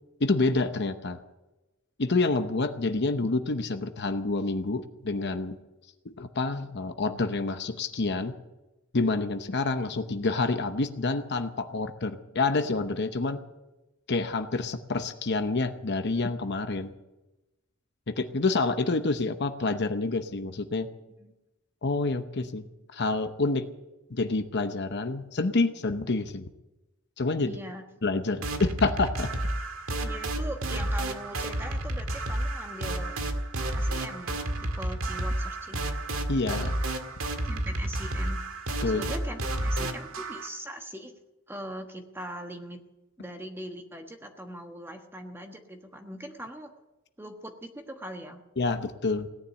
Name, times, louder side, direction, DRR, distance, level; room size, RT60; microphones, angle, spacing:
voice 1, 0.2-1.2 2.0-5.6 6.0-8.3 8.9-13.4 14.1-16.9 18.1-20.9 21.8-22.6 22.9-23.7 24.1-26.5 27.2-27.6 28.0-29.3 36.3-36.8 38.8-39.0 48.6-49.3, left 3 dB, 55° left, 8 dB, 0.9 m, -28 dB
voice 2, 27.4-27.8 30.0-33.1 33.7-36.0 37.4-38.4 38.9-41.2 41.5-42.8 43.2-46.7 47.2-48.4, right 1 dB, 10° right, 4 dB, 1.2 m, -41 dB
sound 1, 28.4-40.5, right 1 dB, 85° right, 1.8 m, -31 dB
17.5 x 10.0 x 8.0 m, 1.0 s
head